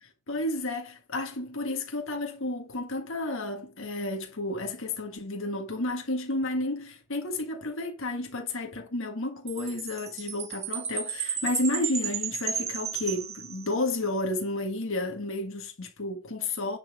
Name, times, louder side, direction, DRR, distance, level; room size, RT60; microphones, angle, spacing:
voice 1, 0.0-16.8, left 2 dB, 60° left, 1.6 m, -31 dB
Chime, 9.5-14.0, right 7 dB, 30° right, 1.6 m, -34 dB
10.5 x 4.3 x 6.0 m
head